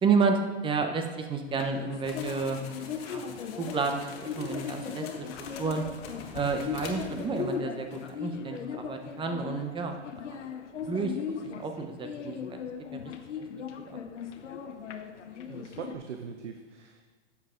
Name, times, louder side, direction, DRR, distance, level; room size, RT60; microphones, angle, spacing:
voice 1, 0.0-2.6 3.0-3.3 3.6-5.3 5.6-5.8 6.3-10.0 10.3-10.4 10.9-12.6 13.8-14.0, right 4 dB, 15° right, 5 dB, 0.8 m, -30 dB
sound 1, 1.6-15.9, left 6 dB, 85° left, 0.9 m, -38 dB
sound 2, 2.0-7.6 7.9-8.1, left 5 dB, 55° left, 1.7 m, -46 dB
voice 2, 15.5-17.0, right 6 dB, 85° right, 5 dB, 0.9 m, -41 dB
10.5 x 7.2 x 3.7 m, 1.4 s
hypercardioid pair, 125°, 35 cm